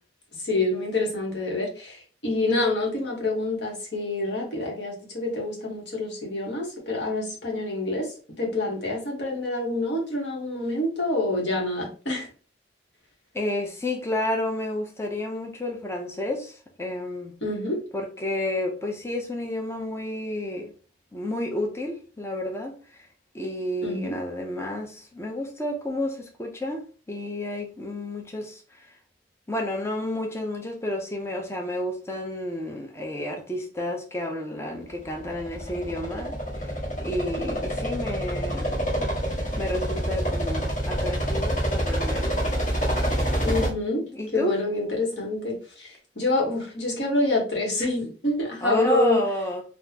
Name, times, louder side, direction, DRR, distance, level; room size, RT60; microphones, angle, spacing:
voice 1, 0.4-8.1 8.4-12.3 17.4-17.8 23.8-24.2 43.4-44.0 44.3-49.2, left 2 dB, 65° left, 1.2 m, -27 dB
voice 2, 13.3-17.3 17.9-20.7 21.1-23.1 23.3-28.9 29.5-39.1 39.6-42.4 44.1-44.6 48.6-49.6, left 1 dB, 15° left, 0.5 m, -31 dB
sound 1, 35.0-43.7, equal, 40° left, 1.3 m, -27 dB
4.0 x 2.4 x 2.8 m
head